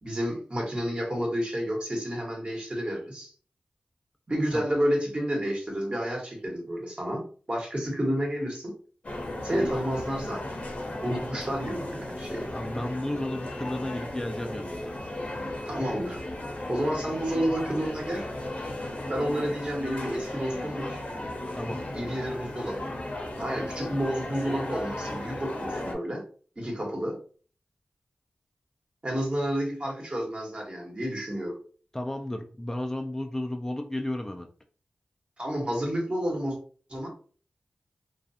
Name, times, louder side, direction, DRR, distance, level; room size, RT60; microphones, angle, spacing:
voice 1, 0.0-3.3 4.3-7.2 7.5-8.7 9.4-10.6 11.0-12.5 15.7-16.2 16.7-18.3 19.1-21.0 21.9-22.9 23.4-26.2 26.6-27.2 29.0-31.6 35.4-36.6 36.9-37.1, equal, 40° right, -1 dB, 1.2 m, -30 dB
sound 1, 9.0-25.9, left 1 dB, 50° left, 0.7 m, -35 dB
voice 2, 12.5-15.0 21.5-21.8 31.9-34.5, left 1 dB, 15° left, 3 dB, 0.3 m, -33 dB
2.4 x 2.3 x 2.6 m, 0.41 s
cardioid pair, 45°, 3 cm